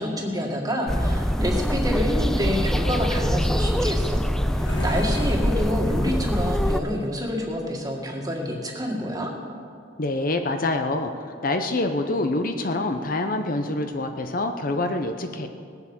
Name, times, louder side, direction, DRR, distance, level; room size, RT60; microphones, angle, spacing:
voice 1, 0.0-9.3, equal, 20° right, 0 dB, 1.9 m, -28 dB
sound 1, 0.9-6.8, equal, ahead, 0.3 m, -24 dB
sound 2, 3.7-7.2, left 1 dB, 80° left, 3.4 m, -40 dB
voice 2, 10.0-15.5, left 2 dB, 45° left, 6 dB, 0.7 m, -26 dB
19.0 x 8.0 x 7.3 m, 2.4 s
head